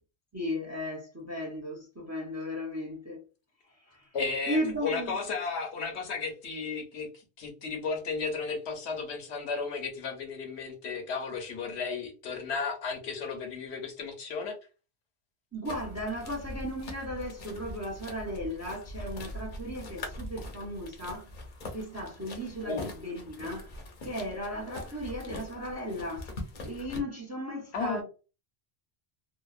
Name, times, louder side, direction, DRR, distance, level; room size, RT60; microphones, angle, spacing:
voice 1, 0.3-3.2 3.7-4.1 4.5-5.2 15.5-21.3 21.7-23.7 24.0-26.3 26.6-28.0, equal, 20° right, 0.5 m, -36 dB
voice 2, 4.1-7.1 7.4-14.6 22.6-22.9 27.7-28.0, left 4 dB, 80° left, 1.0 m, -34 dB
sound 1, 15.6-27.0, left 1 dB, 55° left, 0.7 m, -42 dB
2.7 x 2.1 x 2.3 m
omnidirectional pair, 1.1 m